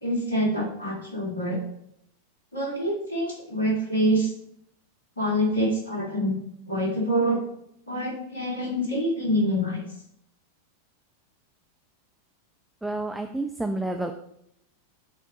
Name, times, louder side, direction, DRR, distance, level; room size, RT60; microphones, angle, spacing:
voice 1, 0.0-1.6 2.5-4.3 5.2-6.4 6.7-7.4 7.9-9.8, equal, 75° left, -2 dB, 2.0 m, -26 dB
voice 2, 12.8-14.1, right 2 dB, 5° right, 5 dB, 0.4 m, -29 dB
8.5 x 3.6 x 3.9 m, 0.73 s
figure-of-eight pair, 90°, 0 cm